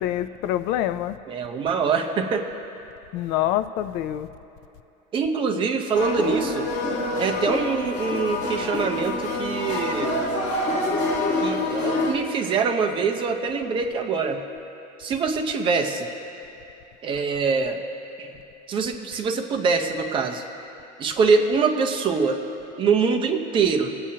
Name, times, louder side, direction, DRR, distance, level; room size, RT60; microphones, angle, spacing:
voice 1, 0.0-1.2 3.1-4.3, left 12 dB, 60° left, 12 dB, 0.4 m, -26 dB
voice 2, 1.3-2.5 5.1-6.7 7.2-10.2 11.4-14.5 15.0-16.1 17.0-17.8 18.2-18.3 18.7-20.4 21.0-22.4 22.8-24.0, right 5 dB, 25° right, 4 dB, 0.6 m, -24 dB
sound 1, 5.9-12.1, left 2 dB, 40° left, 1.3 m, -26 dB
21.5 x 8.6 x 2.8 m, 2.9 s
cardioid pair, 175°, 19 cm